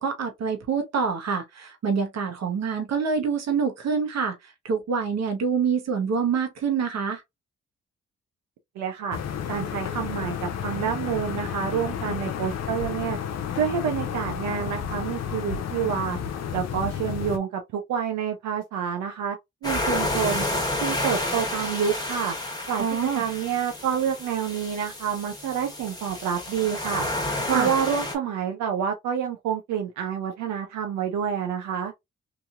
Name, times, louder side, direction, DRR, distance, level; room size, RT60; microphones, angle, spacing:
voice 1, 0.0-7.2 22.8-23.2 27.5-27.7, right 6 dB, 65° right, 0.9 m, -26 dB
voice 2, 8.8-9.2 9.5-13.2 13.5-16.2 16.5-19.4 19.6-20.5 20.8-22.4 22.7-22.8 23.1-27.1 27.5-31.9, right 8 dB, 85° right, 0.5 m, -28 dB
sound 1, 9.1-17.4, left 8 dB, 65° left, 0.6 m, -31 dB
sound 2, 19.6-28.2, left 1 dB, 15° left, 1.2 m, -30 dB
2.8 x 2.6 x 2.4 m
supercardioid pair, 45°, 29 cm